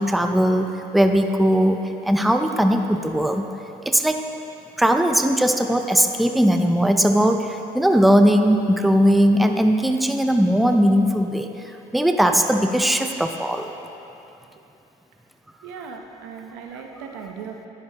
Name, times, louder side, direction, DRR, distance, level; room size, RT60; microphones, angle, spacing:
voice 1, 0.0-3.5 3.9-4.2 4.8-13.7, equal, ahead, 5 dB, 0.4 m, -19 dB
voice 2, 15.6-17.7, right 6 dB, 90° right, 3 dB, 0.8 m, -37 dB
10.0 x 7.5 x 2.8 m, 2.8 s
supercardioid pair, 80°, 17 cm